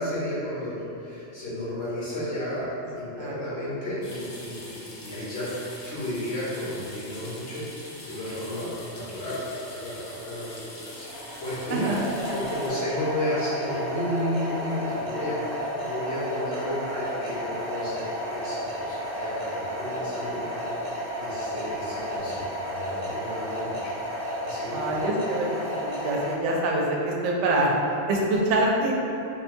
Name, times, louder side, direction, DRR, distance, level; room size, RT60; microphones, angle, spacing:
voice 1, 0.0-11.1 11.4-11.9 12.3-23.9 24.4-25.0, left 1 dB, 65° left, -9 dB, 1.2 m, -33 dB
sound 1, 4.0-12.7, left 1 dB, 90° left, 1.0 m, -44 dB
sound 2, 11.0-26.3, equal, 35° right, 0.7 m, -32 dB
voice 2, 11.7-12.1 24.7-27.7 28.1-28.9, right 1 dB, 85° right, -2 dB, 0.9 m, -25 dB
3.9 x 2.1 x 2.6 m, 2.8 s
omnidirectional pair, 1.2 m